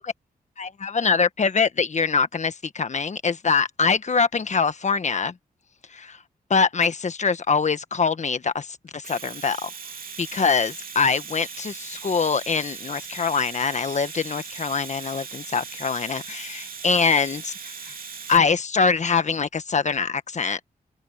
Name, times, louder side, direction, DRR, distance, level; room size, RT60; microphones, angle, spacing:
voice 1, 0.6-5.3 5.9-6.2 6.5-9.7 10.2-17.9 18.3-20.7, left 5 dB, 45° left, 1.4 m, -24 dB
Domestic sounds home sounds, 8.9-18.4, right 5 dB, 60° right, 3.1 m, -39 dB
open air
cardioid pair, 75°, 16 cm